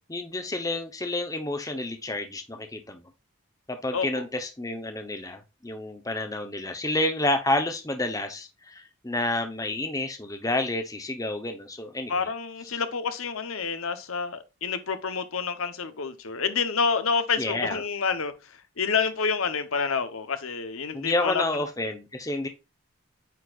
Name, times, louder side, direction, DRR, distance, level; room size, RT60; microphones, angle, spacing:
voice 1, 0.1-3.0 3.7-12.1 17.4-17.8 20.9-22.5, left 2 dB, 15° left, 0.8 m, -29 dB
voice 2, 3.9-4.3 12.1-21.6, left 5 dB, 75° left, 0.9 m, -28 dB
9.2 x 4.4 x 2.4 m
head